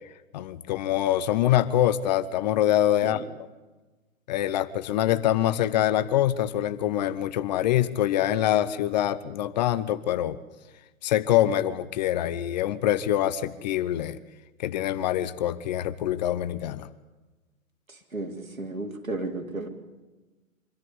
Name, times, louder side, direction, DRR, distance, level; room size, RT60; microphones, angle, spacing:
voice 1, 0.3-3.2 4.3-10.4 11.0-14.2 14.6-16.9, left 12 dB, 35° left, 14 dB, 0.8 m, -25 dB
voice 2, 17.9-19.7, right 2 dB, 85° right, 3 dB, 3.6 m, -34 dB
25.0 x 13.5 x 9.8 m, 1.2 s
figure-of-eight pair, 125°, 40 cm